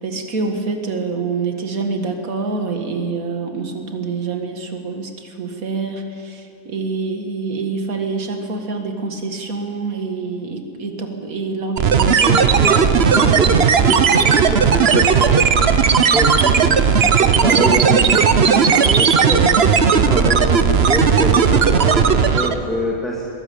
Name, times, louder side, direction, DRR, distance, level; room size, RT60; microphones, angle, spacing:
voice 1, 0.0-12.8 13.5-13.6, right 4 dB, 65° right, 4 dB, 2.2 m, -26 dB
sound 1, 11.8-22.7, right 6 dB, 50° right, 0.9 m, -15 dB
voice 2, 12.1-15.5 16.1-16.8 17.1-19.7 20.0-23.2, right 1 dB, ahead, -4 dB, 2.2 m, -25 dB
22.0 x 14.0 x 8.6 m, 2.5 s
omnidirectional pair, 1.6 m